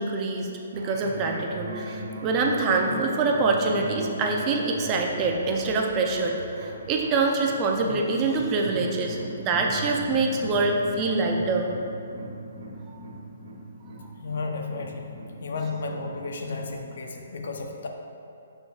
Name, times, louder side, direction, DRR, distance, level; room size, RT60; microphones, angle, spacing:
voice 1, 0.0-11.7 12.9-13.0, right 3 dB, 25° right, 1 dB, 0.6 m, -25 dB
sound 1, 0.7-16.6, right 1 dB, 80° right, 1.4 m, -38 dB
voice 2, 14.2-15.1 15.4-17.9, left 3 dB, 65° left, 3 dB, 0.7 m, -33 dB
11.5 x 3.8 x 2.5 m, 2.6 s
hypercardioid pair, 150°, 0 cm